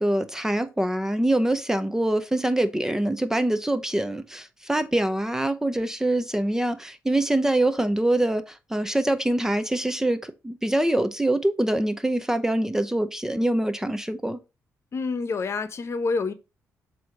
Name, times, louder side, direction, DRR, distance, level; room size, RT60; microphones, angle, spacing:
voice 1, 0.0-14.4, right 1 dB, 10° right, 0.6 m, -24 dB
voice 2, 14.9-16.3, left 4 dB, 50° left, 0.9 m, -27 dB
7.5 x 2.8 x 4.9 m
cardioid pair, 80°, 6 cm